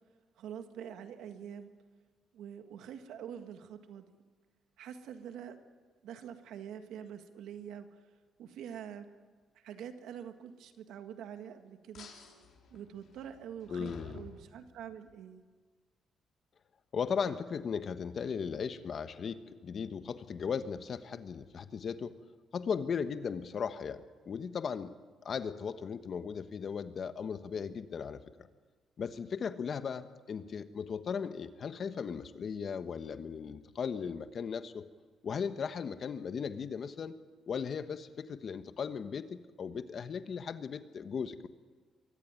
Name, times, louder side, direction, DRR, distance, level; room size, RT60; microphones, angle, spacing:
voice 1, 0.4-1.7 2.3-4.1 4.8-5.6 6.0-7.9 8.4-9.1 9.6-12.1 12.7-15.4, right 9 dB, 85° right, 8 dB, 1.8 m, -45 dB
sound 1, 11.9-15.1, left 5 dB, 65° left, 3.9 m, -53 dB
voice 2, 13.7-14.2 16.9-22.1 22.5-24.9 25.2-28.2 29.0-34.8 35.2-37.2 37.5-41.5, left 6 dB, 50° left, 11 dB, 1.3 m, -37 dB
23.5 x 15.0 x 9.7 m, 1.4 s
cardioid pair, 90°, 0 cm